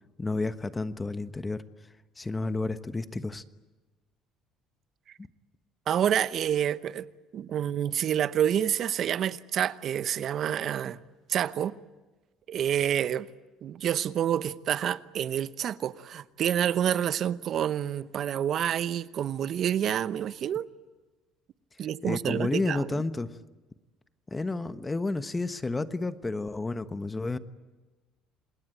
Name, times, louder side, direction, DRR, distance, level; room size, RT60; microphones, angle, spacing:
voice 1, 0.2-1.6 2.2-3.4 22.0-23.3 24.3-27.4, left 3 dB, 20° left, 1.2 m, -31 dB
voice 2, 5.9-7.1 7.3-11.0 11.3-11.7 12.5-13.3 13.6-20.7 21.8-22.9, right 10 dB, 55° right, 0.9 m, -28 dB
27.5 x 20.5 x 9.1 m
supercardioid pair, 90°, 0 cm